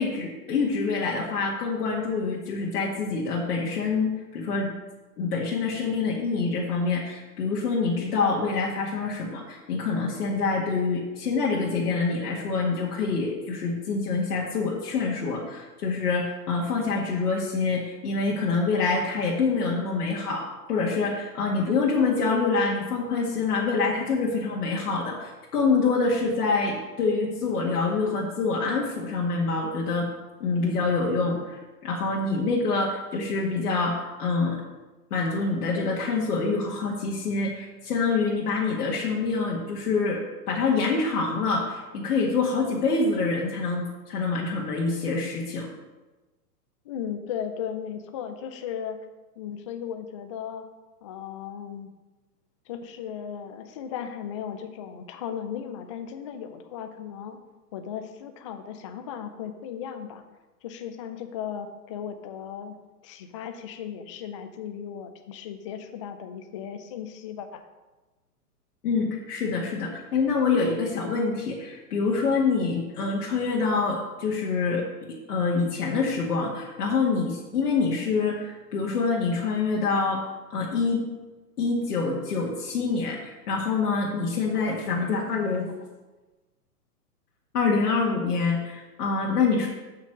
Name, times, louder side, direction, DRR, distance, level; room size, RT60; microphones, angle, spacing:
voice 1, 0.0-4.7 5.2-30.1 30.4-34.6 35.1-45.7 68.8-80.2 80.5-81.0 81.6-85.7 87.5-89.7, left 4 dB, 70° left, -3 dB, 1.9 m, -26 dB
voice 2, 46.8-49.0 49.4-50.7 51.0-51.9 52.7-57.4 57.7-60.2 60.6-62.8 63.0-67.6, left 8 dB, 25° left, 7 dB, 0.4 m, -36 dB
7.5 x 6.0 x 6.5 m, 1.2 s
hypercardioid pair, 125°, 47 cm